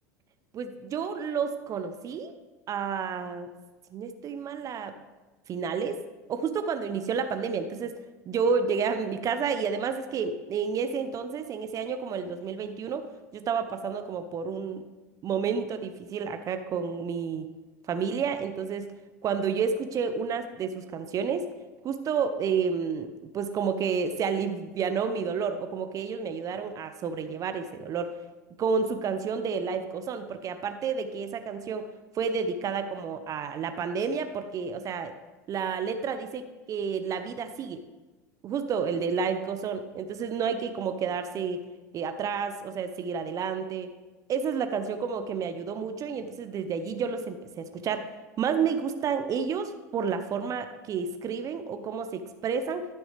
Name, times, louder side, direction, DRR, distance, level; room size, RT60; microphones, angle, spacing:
voice 1, 0.5-2.3 2.7-3.5 3.9-4.9 5.5-6.0 6.3-7.9 8.3-13.1 13.3-14.8 15.2-17.5 17.9-18.9 19.2-21.5 21.8-28.1 28.6-31.9 32.1-35.1 35.5-37.8 38.4-41.6 41.9-43.9 44.3-52.9, right 6 dB, 40° right, 8 dB, 0.7 m, -30 dB
14.0 x 6.1 x 3.4 m, 1.2 s
hypercardioid pair, 85°, 9 cm